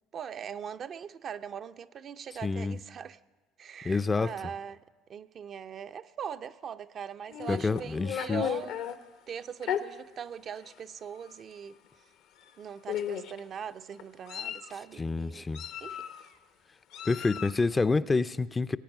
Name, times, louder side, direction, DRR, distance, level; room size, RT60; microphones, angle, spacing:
voice 1, 0.1-3.2 3.6-4.8 5.1-8.7 9.3-11.7 12.6-15.5 15.8-16.1, right 8 dB, 45° right, 0.5 m, -41 dB
voice 2, 2.4-2.8 3.8-4.3 7.5-8.4 15.0-15.6 17.1-18.8, left 3 dB, 20° left, 0.4 m, -28 dB
Meow, 7.3-9.0 9.6-9.8 10.7-10.8 11.2-11.4 12.4-12.5 12.9-13.4 14.0-14.7 15.5-16.3 16.9-17.6, left 9 dB, 70° left, 0.8 m, -35 dB
19.5 x 8.7 x 6.0 m
hypercardioid pair, 75°, 0 cm